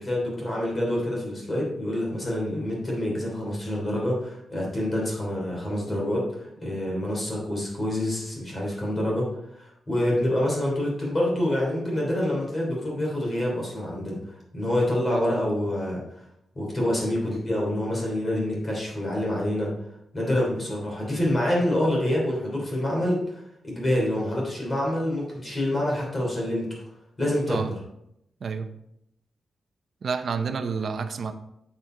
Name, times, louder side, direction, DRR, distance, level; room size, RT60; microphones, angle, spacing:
voice 1, 0.0-9.2 9.6-14.2 14.5-16.0 16.5-19.7 20.1-26.7 27.2-27.7, left 1 dB, 25° left, -3 dB, 3.2 m, -27 dB
voice 2, 30.0-31.3, right 5 dB, 50° right, 7 dB, 0.7 m, -29 dB
8.1 x 7.2 x 3.8 m, 0.80 s
wide cardioid pair, 175°, 0 cm